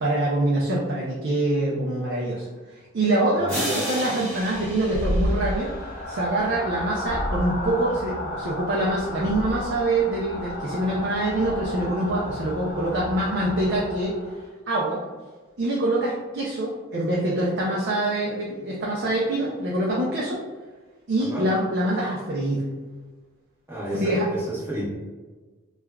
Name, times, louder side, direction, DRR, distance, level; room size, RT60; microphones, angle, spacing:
voice 1, 0.0-2.5 2.9-5.7 6.1-14.2 14.7-15.0 15.6-20.4 21.1-22.6 24.0-24.3, right 1 dB, 55° right, -4 dB, 0.5 m, -25 dB
voice 2, 3.3-3.8 21.3-21.5 23.7-24.9, equal, 10° right, -7 dB, 0.8 m, -30 dB
sound 1, 3.5-6.2, equal, 10° left, 1.2 m, -33 dB
sound 2, 4.5-14.5, left 1 dB, 40° left, 0.6 m, -32 dB
3.2 x 2.3 x 2.2 m, 1.3 s
head